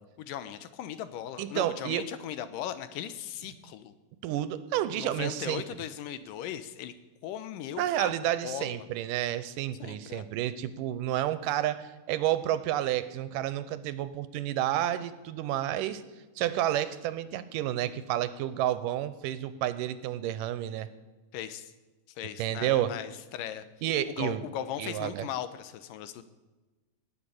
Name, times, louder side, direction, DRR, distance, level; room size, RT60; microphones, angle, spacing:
voice 1, 0.2-3.9 5.0-6.9 7.2-8.1 8.4-8.8 9.8-10.2 21.3-21.7 22.2-23.7 24.1-26.2, left 10 dB, 90° left, 12 dB, 2.6 m, -38 dB
voice 2, 1.4-2.1 4.2-5.6 7.8-16.0 16.4-20.9 22.4-22.9 23.8-24.4 24.8-25.3, right 12 dB, 85° right, 14 dB, 2.4 m, -30 dB
18.0 x 6.8 x 9.9 m, 1.2 s
omnidirectional pair, 3.8 m